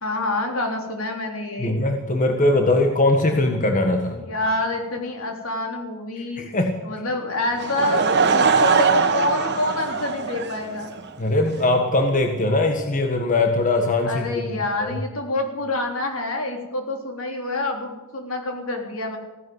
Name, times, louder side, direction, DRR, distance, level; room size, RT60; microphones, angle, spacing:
voice 1, 0.0-1.8 4.2-6.5 6.8-8.1 8.3-10.9 14.0-19.2, left 2 dB, 75° left, 2 dB, 3.7 m, -27 dB
voice 2, 1.6-4.2 6.4-6.7 11.2-14.2 14.8-15.0, left 2 dB, 40° left, 4 dB, 1.5 m, -20 dB
Laughter / Crowd, 7.6-11.1, right 5 dB, 55° right, 1.5 m, -21 dB
16.5 x 11.0 x 7.9 m, 1.2 s
head